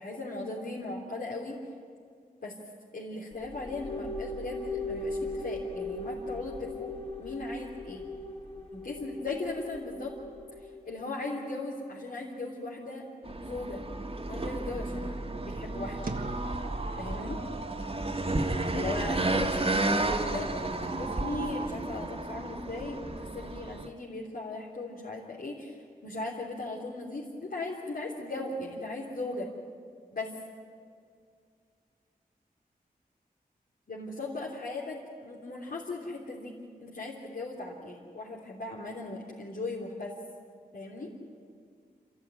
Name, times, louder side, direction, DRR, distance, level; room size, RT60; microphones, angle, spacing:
voice 1, 0.0-1.6 2.4-2.5 2.9-8.0 8.7-10.1 10.8-13.0 13.4-13.8 14.3-16.0 17.0-17.4 18.7-25.8 26.0-29.5 30.1-30.3 33.9-40.1 40.7-41.1, left 2 dB, 75° left, -5 dB, 3.5 m, -38 dB
sound 1, 3.3-10.9, left 2 dB, 40° left, 4.4 m, -38 dB
sound 2, 13.3-23.9, right 2 dB, 40° right, 1.8 m, -32 dB
sound 3, 15.5-21.7, right 4 dB, 70° right, 1.5 m, -41 dB
28.0 x 14.5 x 9.9 m, 2.3 s
wide cardioid pair, 75°, 16 cm